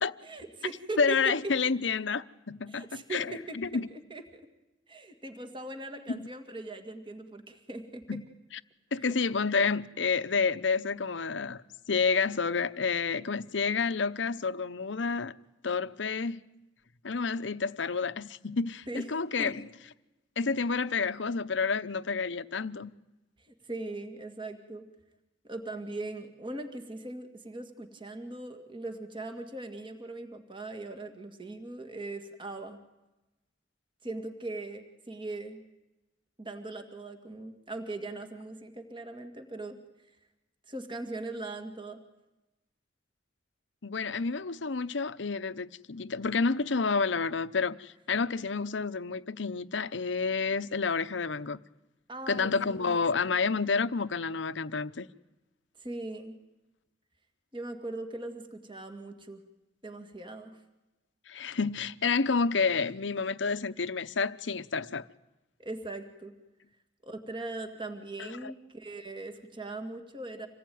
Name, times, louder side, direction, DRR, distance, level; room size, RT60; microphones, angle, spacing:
voice 1, 0.2-1.3 2.7-3.6 3.9-4.5 4.9-8.2 18.9-19.1 19.4-19.5 23.4-24.9 25.4-32.8 34.0-35.6 36.4-39.8 40.7-42.0 52.1-53.0 55.8-56.4 57.5-59.4 59.8-60.6 65.6-66.3 67.0-70.5, right 2 dB, 30° right, 2.1 m, -40 dB
voice 2, 1.0-3.9 6.1-6.3 8.1-8.2 8.9-11.6 11.9-15.3 15.6-16.4 17.0-19.6 20.4-22.9 43.8-51.6 52.3-55.1 61.3-65.1 68.2-68.5, left 5 dB, 75° left, 0.8 m, -29 dB
26.5 x 19.0 x 9.4 m
head